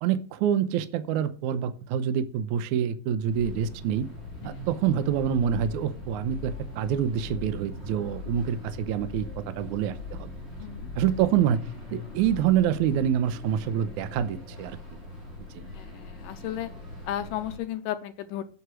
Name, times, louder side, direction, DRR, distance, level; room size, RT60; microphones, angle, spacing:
voice 1, 0.0-4.1 4.4-10.3 11.0-14.8, right 9 dB, 75° right, 12 dB, 1.9 m, -26 dB
sound 1, 3.3-17.6, left 2 dB, 15° right, 3.8 m, -43 dB
sound 2, 3.5-12.4, left 4 dB, 40° left, 2.3 m, -42 dB
voice 2, 15.7-16.7 17.0-18.4, left 11 dB, 75° left, 10 dB, 2.1 m, -34 dB
8.2 x 7.9 x 6.2 m, 0.42 s
omnidirectional pair, 4.1 m